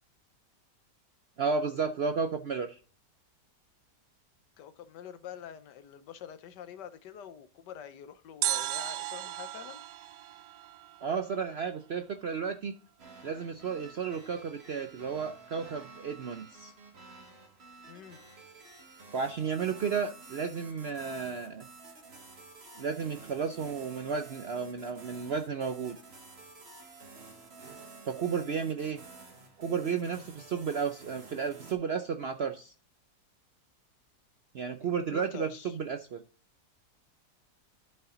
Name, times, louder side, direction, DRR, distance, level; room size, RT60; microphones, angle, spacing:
voice 1, 1.4-2.8 11.0-12.7 13.2-16.7 19.1-21.7 22.8-26.0 28.0-29.0 29.6-32.7 34.5-36.2, right 6 dB, 65° right, 0.6 m, -33 dB
voice 2, 4.6-9.8 17.9-18.2 34.8-35.8, left 9 dB, 85° left, 1.4 m, -46 dB
sound 1, 8.4-11.5 11.7-11.8, right 14 dB, 90° right, 1.2 m, -35 dB
sound 2, 13.0-31.7, right 3 dB, 40° right, 1.7 m, -51 dB
12.0 x 5.6 x 3.8 m
omnidirectional pair, 1.8 m